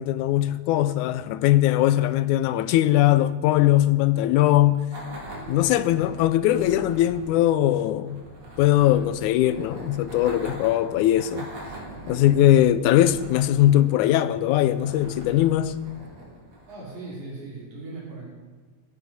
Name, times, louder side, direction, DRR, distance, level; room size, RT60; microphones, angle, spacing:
voice 1, 0.0-4.9 5.5-8.2 8.6-11.5 12.1-15.8, left 13 dB, 85° left, 2.0 m, -20 dB
sound 1, 4.9-17.1, right 1 dB, 35° right, 3.0 m, -42 dB
voice 2, 16.7-18.3, right 3 dB, 75° right, 4.3 m, -38 dB
15.0 x 10.5 x 4.2 m
omnidirectional pair, 3.4 m